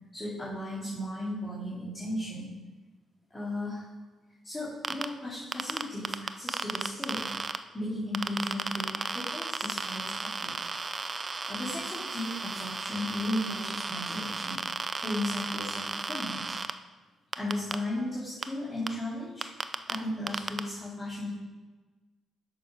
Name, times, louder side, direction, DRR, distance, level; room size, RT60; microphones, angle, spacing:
voice 1, 0.1-2.6 3.3-3.8 4.4-7.2 7.7-10.5 11.5-14.6 15.0-16.5 17.4-19.5 19.9-21.3, left 1 dB, 20° left, -10 dB, 2.8 m, -35 dB
sound 1, 4.8-5.1 5.5-7.6 8.1-16.7 17.3-17.7 18.4-18.5 18.9-19.0 19.4-20.0 20.3-20.6, right 4 dB, 30° right, 0.5 m, -34 dB
7.1 x 6.9 x 5.4 m, 1.3 s
cardioid pair, 90°, 0 cm